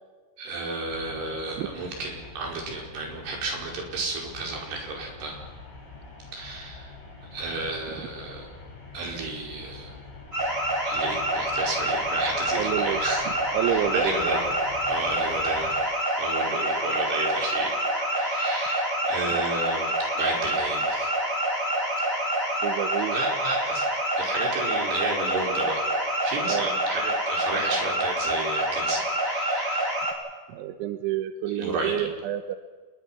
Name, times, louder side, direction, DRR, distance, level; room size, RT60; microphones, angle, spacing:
voice 1, 0.4-5.4 6.3-6.9 7.3-8.5 8.9-9.9 10.8-13.3 13.6-14.5 14.9-21.1 23.1-23.8 24.2-25.8 26.2-30.0 31.6-32.1, right 3 dB, 60° right, 0 dB, 6.9 m, -32 dB
sound 1, 0.8-15.9, left 3 dB, 75° left, 9.0 m, -45 dB
sound 2, 10.3-30.1, right 1 dB, 15° right, 4.0 m, -27 dB
voice 2, 12.5-13.0 13.5-14.2 22.6-23.2 26.5-26.7 30.5-32.6, right 11 dB, 80° right, 9 dB, 3.3 m, -28 dB
27.5 x 21.5 x 6.0 m, 1.4 s
omnidirectional pair, 5.5 m